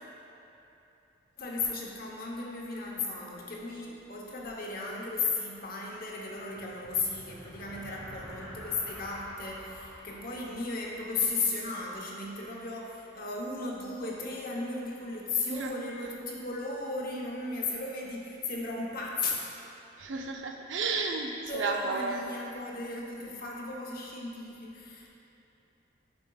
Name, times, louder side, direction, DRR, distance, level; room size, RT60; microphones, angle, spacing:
voice 1, 1.4-19.4 21.4-25.1, left 3 dB, 50° left, -2 dB, 0.8 m, -35 dB
sound 1, 6.4-12.1, equal, 25° right, 1.3 m, -48 dB
voice 2, 20.0-22.2, right 4 dB, 75° right, 2 dB, 0.5 m, -32 dB
8.5 x 5.1 x 2.3 m, 2.9 s
head